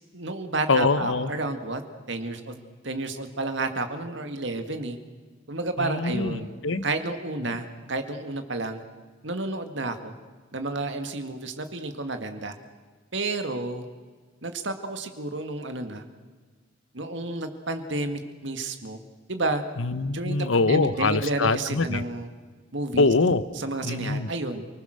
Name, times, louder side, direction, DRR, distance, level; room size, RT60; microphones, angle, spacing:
voice 1, 0.1-1.8 2.1-2.6 2.8-5.0 5.5-6.5 6.8-8.8 9.2-10.1 10.5-12.6 13.1-13.8 14.4-16.0 16.9-19.0 19.3-19.6 20.1-22.3 22.7-23.1 23.6-24.7, right 2 dB, 65° right, 7 dB, 2.0 m, -31 dB
voice 2, 0.7-1.3 5.8-6.8 7.4-7.6 19.8-22.0 23.0-23.4 23.8-24.3, left 3 dB, 80° left, 14 dB, 1.0 m, -24 dB
29.5 x 20.0 x 6.5 m, 1.5 s
head